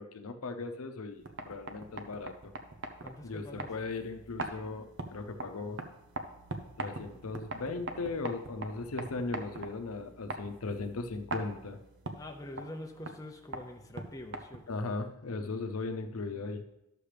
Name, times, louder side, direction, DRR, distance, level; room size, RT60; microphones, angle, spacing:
voice 1, 0.0-2.5 3.2-5.8 6.8-11.8 14.7-16.6, left 3 dB, 75° left, 6 dB, 0.7 m, -38 dB
sound 1, 1.1-14.8, right 2 dB, 55° right, 0.7 m, -43 dB
voice 2, 3.0-3.7 12.2-14.8, left 1 dB, 15° left, 2 dB, 0.5 m, -45 dB
11.5 x 6.8 x 3.4 m, 0.90 s
head